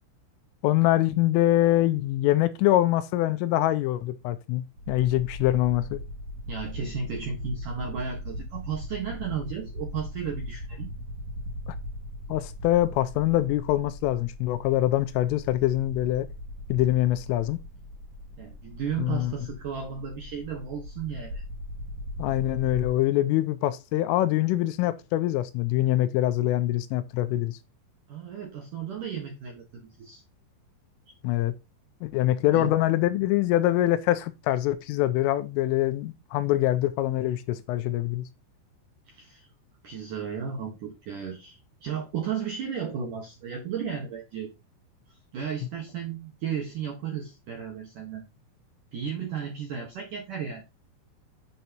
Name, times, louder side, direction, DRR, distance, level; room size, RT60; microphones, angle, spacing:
voice 1, 0.6-6.0 11.7-11.8 12.3-16.3 16.7-17.6 19.0-19.3 22.2-27.6 31.2-31.5 32.0-38.3, left 14 dB, 85° left, 3.2 m, -24 dB
helicopter fx, 4.8-22.9, equal, 45° right, 2.7 m, -39 dB
voice 2, 6.5-10.9 18.4-21.4 28.1-30.2 32.5-32.7 39.1-39.5 39.8-44.5 45.3-48.2 48.9-50.6, right 7 dB, 70° right, 1.9 m, -34 dB
8.3 x 7.7 x 2.9 m
omnidirectional pair, 5.9 m